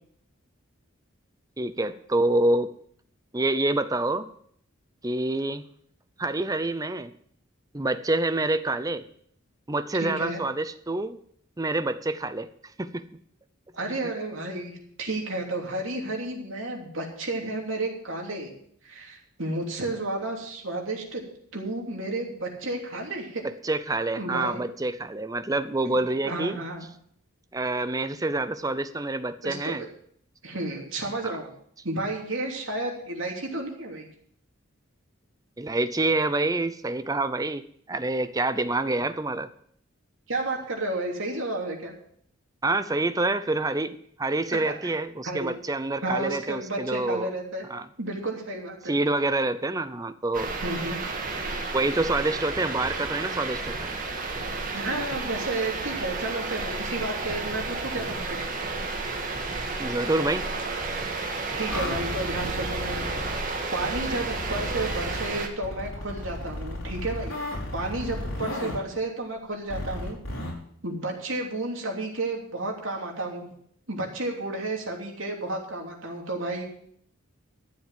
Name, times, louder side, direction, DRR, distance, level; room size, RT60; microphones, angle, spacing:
voice 1, 1.6-2.7 3.3-4.3 5.0-5.6 6.2-7.1 7.7-9.0 9.7-11.2 11.6-12.5 12.8-13.2 14.0-14.1 23.6-26.6 27.5-29.8 31.2-31.4 35.6-39.5 42.6-47.3 47.7-47.9 48.9-50.5 51.7-53.9 59.8-60.5, right 2 dB, 15° right, 12 dB, 0.6 m, -27 dB
voice 2, 9.9-10.4 13.7-14.7 15.0-18.5 18.8-21.2 21.5-23.4 24.2-24.6 26.2-26.8 29.4-29.9 30.4-31.5 31.8-34.1 40.3-41.9 44.8-45.0 45.2-45.5 46.0-47.6 48.0-48.9 50.6-51.0 54.7-58.4 61.5-63.1 63.4-67.4 67.7-70.2 70.8-73.5 73.9-76.6, right 2 dB, 70° right, 0 dB, 3.1 m, -32 dB
sound 1, 50.3-65.5, right 3 dB, 40° right, 1.7 m, -32 dB
sound 2, 61.7-63.4 63.9-65.3 65.6-68.8 69.7-70.5, left 1 dB, 75° left, 5.1 m, -34 dB
12.5 x 7.7 x 7.5 m, 0.65 s
head